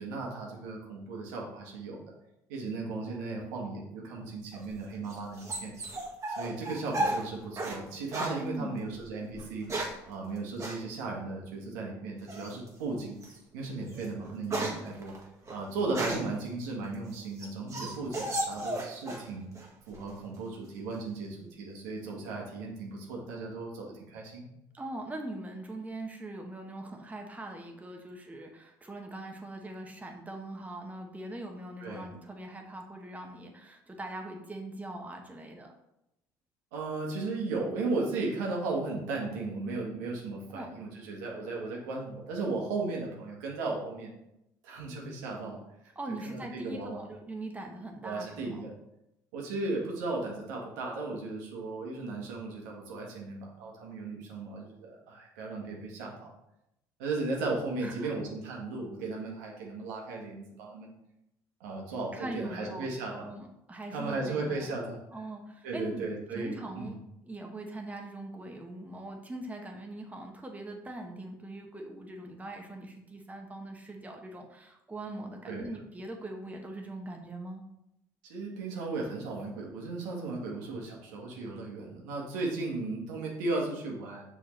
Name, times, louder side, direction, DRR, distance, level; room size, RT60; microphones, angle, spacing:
voice 1, 0.0-2.0 2.5-5.7 6.3-9.7 10.1-13.2 13.5-15.1 15.5-19.5 19.9-24.5 31.8-32.1 36.7-44.1 44.6-45.6 46.2-47.0 48.0-48.7 49.3-56.3 57.0-60.9 61.6-63.3 63.9-65.0 65.6-67.0 75.4-75.8 78.3-84.2, right 3 dB, 85° right, -2 dB, 1.6 m, -36 dB
sound 1, 4.5-7.8 8.1-8.4 9.3-10.1 10.6-10.8 12.3-12.7 13.2-13.4 13.8-16.4 16.9-19.3 19.6-20.2, right 1 dB, 30° right, 1.7 m, -35 dB
voice 2, 8.4-8.9 24.7-35.7 40.5-40.7 45.9-48.6 57.8-58.1 62.1-64.8 65.1-66.1 66.3-67.0 67.2-77.6, right 1 dB, 15° right, 2 dB, 1.2 m, -41 dB
6.1 x 4.9 x 3.2 m, 0.83 s
hypercardioid pair, 70°, 10 cm